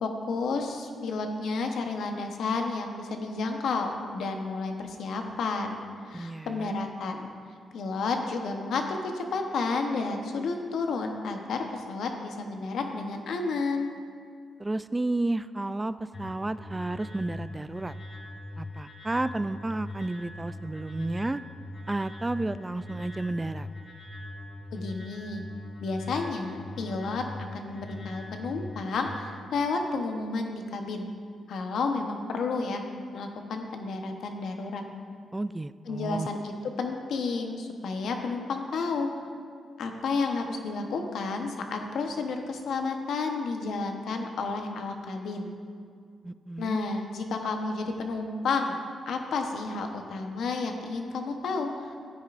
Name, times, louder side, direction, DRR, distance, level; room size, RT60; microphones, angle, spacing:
voice 1, 0.0-5.8 6.0-7.3 7.7-13.9 24.7-25.4 25.8-27.2 27.5-31.1 31.5-32.8 33.1-34.8 35.9-36.5 36.8-39.1 39.8-45.5 46.6-48.8 49.1-52.0, left 4 dB, 75° left, 4 dB, 1.0 m, -31 dB
voice 2, 6.1-6.7 14.6-17.9 18.6-21.4 21.9-23.7 35.3-36.3 46.2-46.8, right 2 dB, 20° right, 14 dB, 0.3 m, -32 dB
sound 1, 16.1-29.1, left 2 dB, 45° left, 2.2 m, -41 dB
14.5 x 9.4 x 2.5 m, 2.1 s
supercardioid pair, 60°, 0 cm